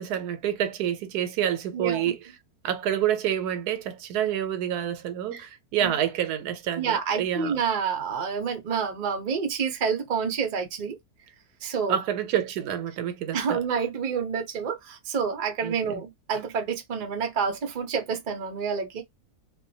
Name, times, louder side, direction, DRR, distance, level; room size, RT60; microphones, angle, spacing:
voice 1, 0.0-2.2 2.6-7.6 11.9-13.6 15.6-16.0, right 10 dB, 85° right, 1.1 m, -28 dB
voice 2, 1.7-2.1 5.3-5.5 5.8-5.9 6.8-11.0 11.6-12.0 13.3-19.0, right 6 dB, 50° right, 0.5 m, -28 dB
2.5 x 2.2 x 2.6 m
omnidirectional pair, 1.7 m